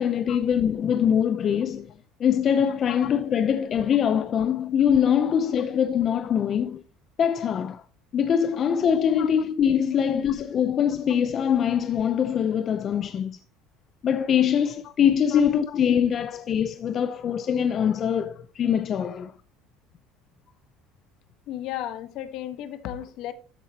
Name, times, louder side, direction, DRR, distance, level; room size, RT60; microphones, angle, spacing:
voice 1, 0.0-1.9 2.2-6.8 7.2-7.8 8.1-13.4 14.0-19.3, left 8 dB, 40° left, 0.7 m, -23 dB
voice 2, 21.5-23.3, left 12 dB, 60° left, 1.2 m, -35 dB
13.5 x 7.1 x 2.9 m
cardioid pair, 125°, 0 cm